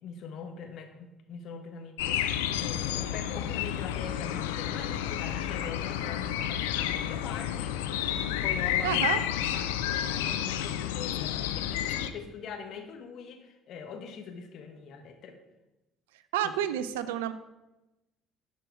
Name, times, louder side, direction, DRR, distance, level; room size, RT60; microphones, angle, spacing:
voice 1, 0.0-9.0 9.3-15.4 16.4-16.5, left 6 dB, 60° left, 5 dB, 1.2 m, -43 dB
sound 1, 2.0-12.1, left 11 dB, 80° left, 0.4 m, -30 dB
voice 2, 8.8-9.2 16.3-17.3, right 10 dB, 80° right, 13 dB, 0.5 m, -29 dB
10.5 x 4.5 x 4.9 m, 0.98 s
hypercardioid pair, 55°, 0 cm